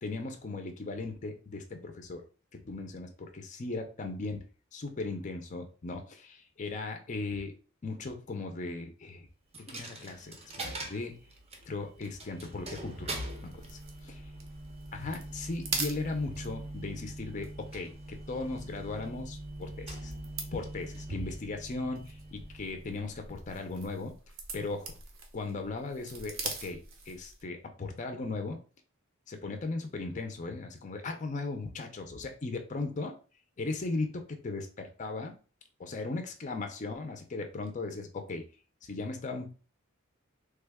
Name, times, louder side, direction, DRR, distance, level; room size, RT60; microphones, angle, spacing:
voice 1, 0.0-2.2 2.6-4.4 4.7-7.5 7.8-9.3 9.5-11.2 11.7-13.2 13.6-13.8 14.0-14.2 14.9-20.1 20.5-24.1 24.5-24.9 25.3-28.6 29.3-33.1 33.6-35.4 35.8-38.4 38.8-39.5, left 3 dB, 35° left, 5 dB, 0.5 m, -37 dB
Coin (dropping), 9.5-23.3, right 1 dB, 30° right, 0.6 m, -43 dB
sound 1, 13.1-27.5, right 4 dB, 75° right, 0.8 m, -44 dB
3.3 x 2.2 x 3.4 m, 0.36 s
head